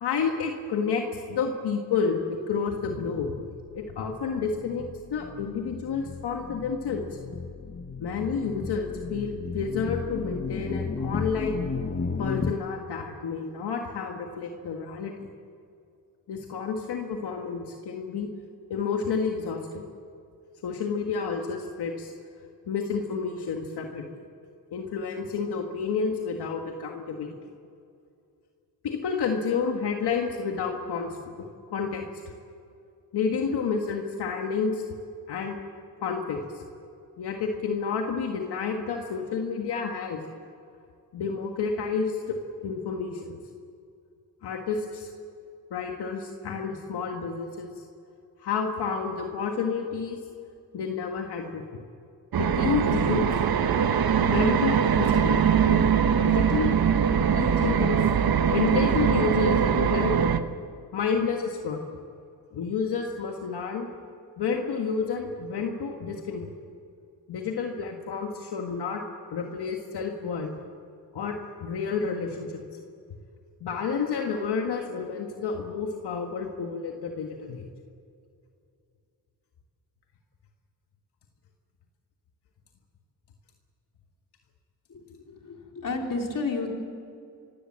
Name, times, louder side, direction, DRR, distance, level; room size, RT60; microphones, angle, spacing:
voice 1, 0.0-3.5 3.7-7.0 8.0-11.6 12.2-15.3 16.3-18.3 18.7-19.9 20.6-22.1 22.7-24.2 24.7-27.3 28.8-31.1 31.4-31.5 31.7-32.0 33.1-34.8 35.3-35.5 36.0-36.6 37.2-40.2 41.1-42.4 42.6-43.4 44.4-45.1 45.7-47.8 48.4-50.2 50.7-51.8 52.4-53.3 54.3-55.8 56.2-56.8 57.1-58.0 58.5-60.1 60.9-61.9 62.5-63.9 64.4-66.5 67.3-69.0 69.3-70.5 71.1-72.6 73.6-77.7, left 5 dB, 90° left, 2 dB, 1.8 m, -30 dB
sound 1, 3.4-12.5, left 4 dB, 30° left, 1.0 m, -34 dB
sound 2, 52.3-60.4, right 7 dB, 65° right, 1.2 m, -22 dB
voice 2, 85.3-86.7, left 3 dB, 55° left, 1 dB, 4.1 m, -31 dB
25.0 x 16.5 x 7.6 m, 2.5 s
cardioid pair, 75°, 39 cm